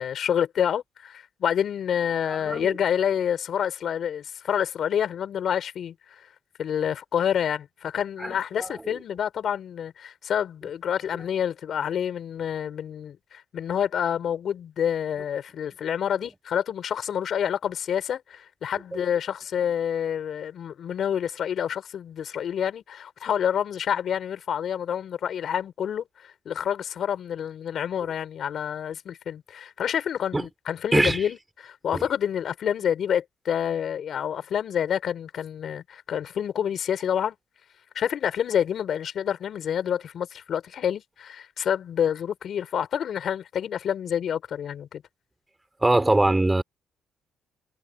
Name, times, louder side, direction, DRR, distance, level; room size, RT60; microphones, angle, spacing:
voice 1, 0.0-6.3 6.6-37.3 37.9-45.0, left 9 dB, 65° left, 4.4 m, -28 dB
voice 2, 2.3-2.7 8.2-8.7 18.9-19.0 30.3-30.4 30.9-31.3 31.9-32.0 45.8-46.6, right 2 dB, 15° right, 5.0 m, -23 dB
supercardioid pair, 75°, 0 cm